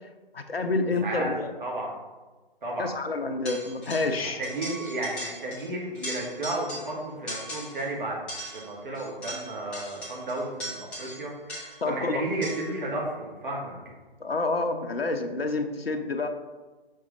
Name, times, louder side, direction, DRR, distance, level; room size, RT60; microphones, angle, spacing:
voice 1, 0.3-1.5 2.8-4.4 11.8-12.2 14.2-16.3, left 3 dB, 75° left, 6 dB, 0.9 m, -28 dB
voice 2, 1.0-1.9 2.6-2.9 4.2-8.2 8.5-13.7, right 2 dB, 55° right, -3 dB, 2.4 m, -33 dB
sound 1, 3.5-4.2 4.4-5.7 5.9-7.0 7.3-7.9 8.3-11.9 12.4-12.8, equal, 5° left, 0.6 m, -39 dB
6.5 x 5.7 x 3.8 m, 1.3 s
figure-of-eight pair, 140°, 30 cm